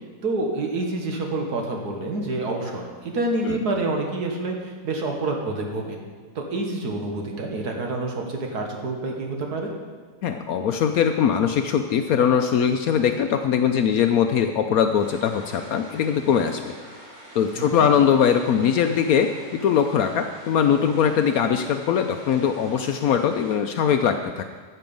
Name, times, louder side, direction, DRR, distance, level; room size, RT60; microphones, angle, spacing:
voice 1, 0.2-6.0 6.4-9.7 17.6-17.9, right 2 dB, 70° right, 1 dB, 1.9 m, -28 dB
voice 2, 10.2-16.7 17.4-24.4, left 8 dB, 70° left, 7 dB, 1.0 m, -21 dB
sound 1, 15.0-23.5, equal, 45° right, 4.5 m, -45 dB
13.5 x 6.9 x 5.3 m, 1.5 s
omnidirectional pair, 1.7 m